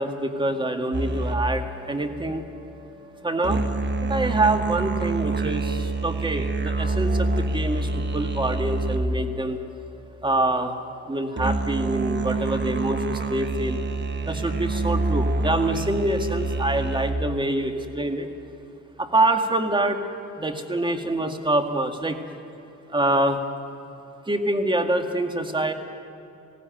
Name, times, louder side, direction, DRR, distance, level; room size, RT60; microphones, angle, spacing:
voice 1, 0.0-2.4 3.2-3.6 4.0-9.6 10.2-10.7 11.1-13.8 14.2-18.3 19.0-20.0 20.4-22.2 22.9-23.4 24.3-25.7, right 1 dB, 15° right, 6 dB, 2.0 m, -25 dB
sound 1, 0.9-9.4 11.4-17.2, right 3 dB, 35° right, 1.5 m, -27 dB
19.5 x 16.0 x 9.2 m, 3.0 s
cardioid pair, 90°, 30 cm